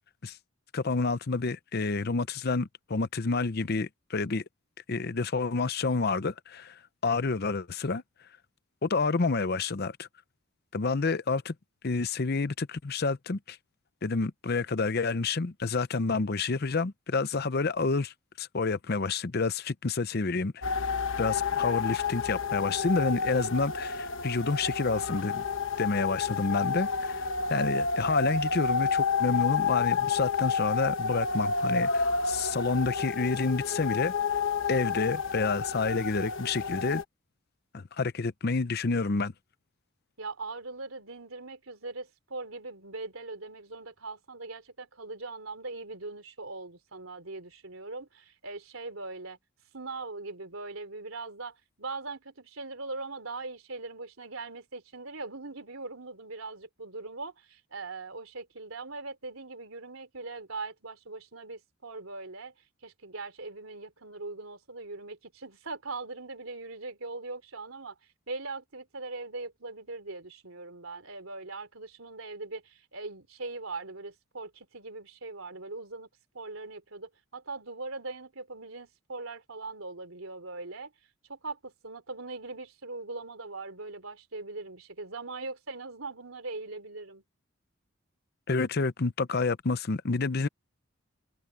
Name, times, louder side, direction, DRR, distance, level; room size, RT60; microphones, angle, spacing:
voice 1, 0.7-4.4 4.9-8.0 8.8-10.1 10.7-11.5 11.8-13.6 14.0-20.5 21.2-25.4 25.8-34.1 34.7-37.0 37.7-39.3 88.5-90.5, left 4 dB, 50° left, 0.7 m, -29 dB
sound 1, 20.6-37.0, left 5 dB, 65° left, 1.1 m, -30 dB
voice 2, 40.2-49.4 49.7-62.5 62.8-67.9 68.3-76.1 76.3-80.9 81.3-87.2, right 3 dB, 85° right, 3.4 m, -41 dB
head